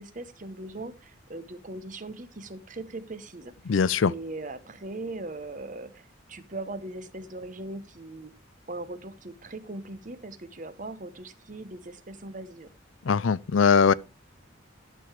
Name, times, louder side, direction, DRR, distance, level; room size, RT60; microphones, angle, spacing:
voice 1, 0.0-3.5 4.0-8.3 8.7-12.7, right 2 dB, 40° right, 1.0 m, -39 dB
voice 2, 3.7-4.1 13.1-13.9, left 6 dB, 75° left, 0.5 m, -21 dB
12.0 x 6.7 x 4.7 m
head